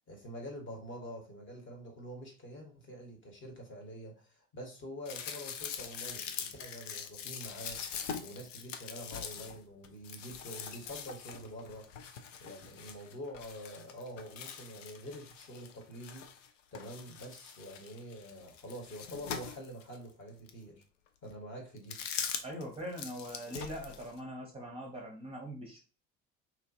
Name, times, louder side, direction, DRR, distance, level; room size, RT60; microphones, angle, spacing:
voice 1, 0.1-11.9 12.4-16.3 16.7-20.8 21.2-22.0, equal, 30° left, 1 dB, 1.1 m, -46 dB
sound 1, 5.1-16.5 16.7-20.0 20.5-20.6 21.8-22.6 22.9-24.2, left 7 dB, 70° left, 0.5 m, -43 dB
voice 2, 22.4-25.8, equal, 15° right, -1 dB, 0.7 m, -42 dB
2.9 x 2.5 x 2.6 m, 0.36 s
figure-of-eight pair, 65°, 38 cm